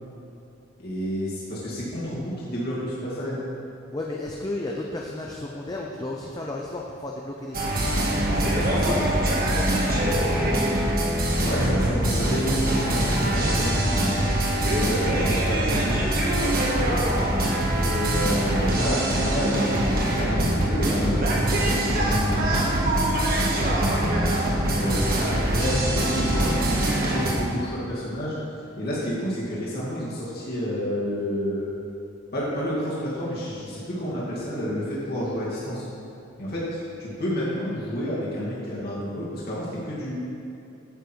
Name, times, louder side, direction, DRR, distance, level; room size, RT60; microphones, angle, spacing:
voice 1, 0.8-3.4 11.4-14.2 14.7-15.1 15.5-16.1 17.7-22.7 23.7-26.5 26.9-28.3 28.8-31.7 32.3-35.8 36.4-40.2, equal, 50° left, -8 dB, 2.3 m, -30 dB
voice 2, 3.9-7.8 8.3-9.1 9.4-10.6 14.7-14.9 16.8-17.1 23.4-23.9, left 2 dB, 20° left, -1 dB, 0.6 m, -33 dB
sound 1, 7.5-27.3, right 1 dB, 50° right, 1.5 m, -23 dB
10.0 x 7.3 x 4.6 m, 2.6 s
head